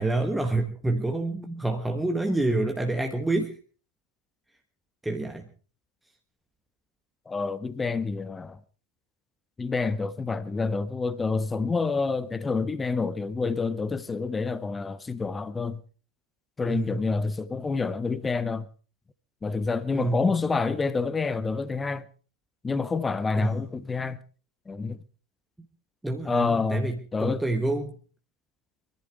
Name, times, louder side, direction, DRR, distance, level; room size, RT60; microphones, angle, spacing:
voice 1, 0.0-3.5 5.0-5.5 16.7-17.0 19.9-20.2 23.4-23.6 26.0-28.0, right 2 dB, 5° right, 1.3 m, -27 dB
voice 2, 7.3-8.6 9.6-15.8 16.6-18.7 19.4-22.0 22.6-24.2 24.7-25.0 26.3-27.4, left 4 dB, 15° left, 0.7 m, -28 dB
23.5 x 14.5 x 3.5 m
figure-of-eight pair, 90°, 0 cm